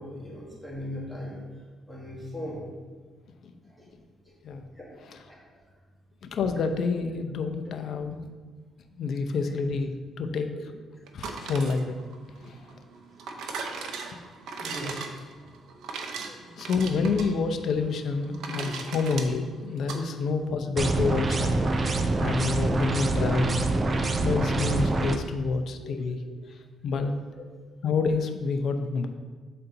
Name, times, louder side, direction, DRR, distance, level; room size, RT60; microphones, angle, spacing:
voice 1, 0.0-1.6 1.9-2.7 3.6-3.9 4.2-4.3 4.7-5.4 9.4-9.5 14.6-15.2 16.2-16.4 18.4-18.5 20.1-20.2 25.8-26.0 26.2-26.6 27.4-27.5, left 1 dB, 5° left, -5 dB, 1.8 m, -40 dB
voice 2, 6.3-8.2 9.0-10.5 11.1-12.0 12.4-12.7 15.9-16.0 16.4-23.6 24.2-26.2 26.8-27.1 27.8-29.1, left 4 dB, 65° left, 6 dB, 0.6 m, -28 dB
sound 1, 11.1-20.0, right 4 dB, 80° right, 0.7 m, -38 dB
sound 2, 20.8-25.2, right 2 dB, 35° right, 0.6 m, -25 dB
7.7 x 4.3 x 4.0 m, 1.4 s
cardioid pair, 90°, 0 cm